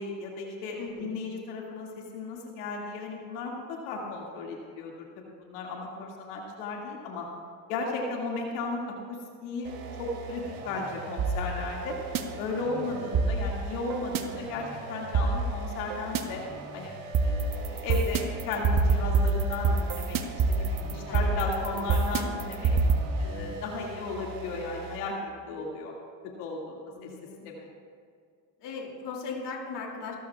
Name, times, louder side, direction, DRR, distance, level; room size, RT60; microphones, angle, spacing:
voice 1, 0.0-7.3 7.7-9.2 9.4-9.7 10.0-12.0 12.4-16.4 16.7-17.0 17.2-20.2 20.5-22.7 23.2-25.9 26.4-27.1 27.4-27.7, left 3 dB, 80° left, -1 dB, 2.3 m, -35 dB
voice 2, 0.8-1.2 12.9-13.3 21.0-21.2 21.7-21.9 22.2-22.3 22.7-22.8 23.2-23.6 26.9-27.4 28.6-30.2, left 4 dB, 60° left, 0 dB, 2.8 m, -39 dB
sound 1, 9.6-25.1, right 4 dB, 90° right, 1.9 m, -41 dB
sound 2, 11.2-12.2 13.1-14.2 15.1-16.2 17.1-23.0, right 4 dB, 45° right, 1.2 m, -26 dB
25.5 x 13.0 x 2.4 m, 2.1 s
supercardioid pair, 75°, 47 cm